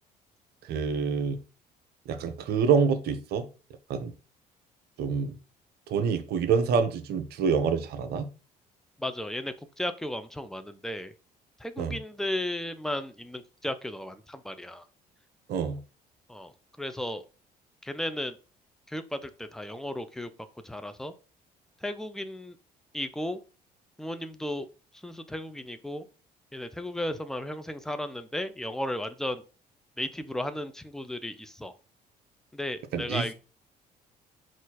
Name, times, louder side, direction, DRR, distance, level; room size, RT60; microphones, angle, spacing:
voice 1, 0.6-1.4 2.1-3.5 3.9-4.1 5.0-5.4 5.9-8.3 11.8-12.0 15.5-15.8 32.9-33.3, right 6 dB, 50° right, 0.6 m, -26 dB
voice 2, 9.0-11.1 11.6-14.8 16.3-16.5 16.8-17.2 17.8-18.4 18.9-20.3 20.6-21.1 21.8-22.5 22.9-23.4 24.0-24.7 25.0-26.0 26.5-29.4 30.0-31.7 32.5-33.3, left 1 dB, ahead, 0.4 m, -34 dB
3.9 x 2.5 x 3.9 m
figure-of-eight pair, 50°, 21 cm